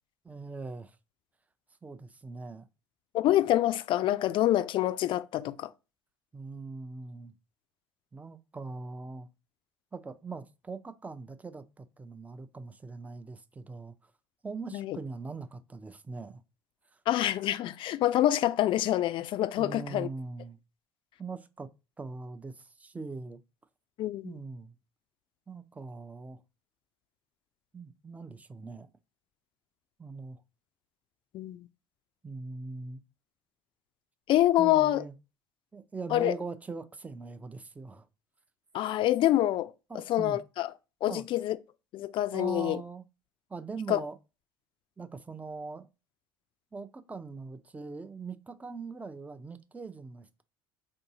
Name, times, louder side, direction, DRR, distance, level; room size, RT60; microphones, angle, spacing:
voice 1, 0.2-1.0 1.8-2.7 6.3-7.3 8.1-9.3 9.9-14.1 14.4-16.4 16.9-17.0 19.5-20.6 21.2-21.7 22.0-23.4 24.2-24.7 25.5-26.4 27.7-28.9 30.0-30.4 32.2-33.0 34.6-35.2 35.7-38.1 39.9-40.4 41.1-41.2 42.3-43.0 43.5-44.2 45.0-45.9 46.7-50.4, right 4 dB, 15° right, 0.5 m, -41 dB
voice 2, 3.1-5.7 14.7-15.0 17.1-20.1 24.0-24.3 31.3-31.7 34.3-35.0 36.1-36.3 38.7-40.7 41.0-41.6 41.9-42.8 43.9-44.0, left 13 dB, 50° left, 0.4 m, -26 dB
4.5 x 2.7 x 2.7 m
hypercardioid pair, 65°, 11 cm